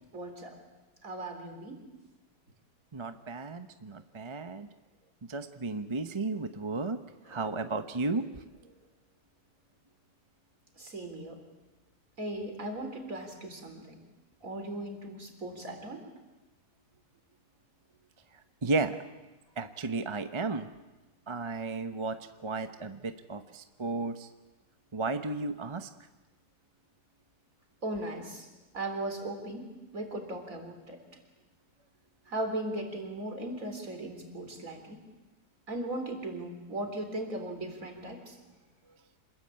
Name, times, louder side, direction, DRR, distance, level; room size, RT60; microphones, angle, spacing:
voice 1, 0.1-0.6 1.0-1.8 7.2-7.6 10.8-11.4 12.2-14.0 14.4-16.1 27.8-28.5 28.7-31.0 32.3-35.0 35.7-38.4, right 1 dB, 50° right, 5 dB, 4.2 m, -38 dB
voice 2, 2.9-4.7 5.3-7.0 7.3-8.2 18.6-19.0 19.6-20.7 21.3-24.3 24.9-25.9, right 3 dB, 25° right, 8 dB, 0.7 m, -33 dB
27.0 x 21.5 x 8.7 m, 1.1 s
omnidirectional pair, 1.9 m